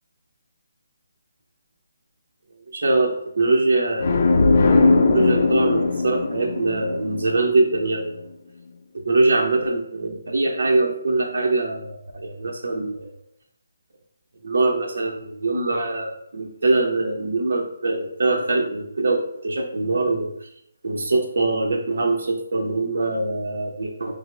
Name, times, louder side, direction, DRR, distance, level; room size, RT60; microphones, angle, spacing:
voice 1, 2.7-4.6 5.0-8.2 8.9-13.1 14.4-20.3 20.8-24.2, right 2 dB, 65° right, 0 dB, 0.7 m, -23 dB
sound 1, 4.0-7.7, left 3 dB, 45° left, 0.6 m, -19 dB
5.6 x 2.0 x 3.2 m, 0.71 s
hypercardioid pair, 165°, 0 cm